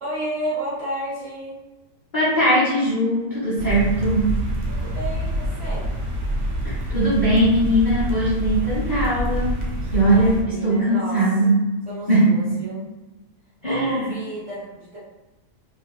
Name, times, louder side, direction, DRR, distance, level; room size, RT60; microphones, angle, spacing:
voice 1, 0.0-1.6 4.7-5.9 10.1-11.2 11.9-12.8 13.6-15.0, right 1 dB, 45° right, -10 dB, 1.6 m, -31 dB
voice 2, 2.1-4.4 6.6-9.5 9.9-11.7 12.1-12.6 13.6-14.1, right 1 dB, 60° left, -8 dB, 0.5 m, -20 dB
sound 1, 3.6-10.4, equal, 75° right, 1.3 m, -26 dB
3.3 x 2.5 x 2.3 m, 1.1 s
omnidirectional pair, 1.9 m